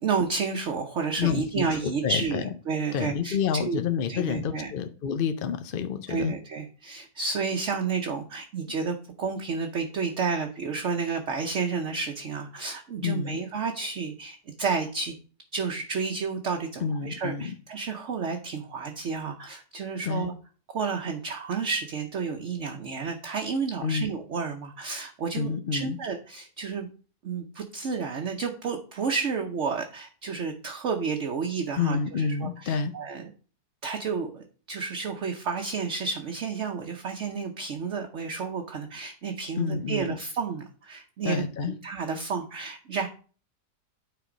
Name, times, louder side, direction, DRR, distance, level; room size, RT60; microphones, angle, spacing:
voice 1, 0.0-3.8 4.1-4.7 6.1-15.1 15.5-20.3 20.7-26.9 27.2-33.2 33.8-41.5 41.8-43.1, right 5 dB, 55° right, 3 dB, 1.0 m, -31 dB
voice 2, 1.2-1.7 2.0-2.4 2.9-6.3 13.0-13.4 16.8-17.5 20.0-20.3 23.8-24.1 25.4-26.0 31.8-32.9 39.6-40.2 41.2-41.8, left 6 dB, 65° left, 8 dB, 0.5 m, -28 dB
9.2 x 4.0 x 5.0 m, 0.38 s
omnidirectional pair, 1.7 m